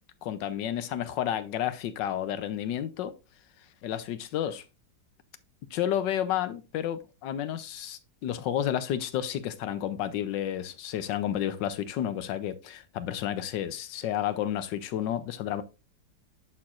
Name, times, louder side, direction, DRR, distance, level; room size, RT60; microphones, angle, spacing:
voice 1, 0.2-3.1 3.8-4.6 5.7-15.6, left 10 dB, 80° left, 1.3 m, -31 dB
11.5 x 4.4 x 2.4 m
omnidirectional pair, 2.0 m